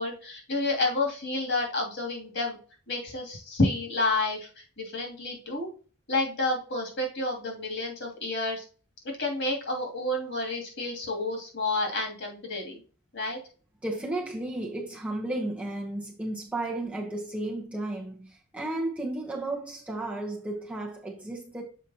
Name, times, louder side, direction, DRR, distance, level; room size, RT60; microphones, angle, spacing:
voice 1, 0.0-2.6 2.9-5.7 6.1-8.6 9.2-12.8 13.1-13.4, left 2 dB, 55° left, 2.6 m, -30 dB
voice 2, 13.8-21.6, right 2 dB, 5° right, 1.0 m, -33 dB
7.4 x 5.0 x 2.8 m
head